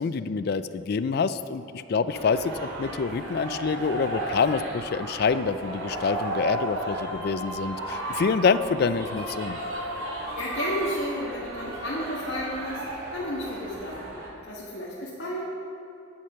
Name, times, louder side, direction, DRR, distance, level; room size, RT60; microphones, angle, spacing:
voice 1, 0.0-1.6 1.9-9.6, left 5 dB, 50° left, 13 dB, 0.4 m, -26 dB
sound 1, 2.1-14.3, right 1 dB, 80° right, 2.7 m, -34 dB
voice 2, 10.3-14.1 14.4-15.4, equal, 75° left, -7 dB, 1.7 m, -32 dB
9.7 x 8.6 x 5.7 m, 2.8 s
head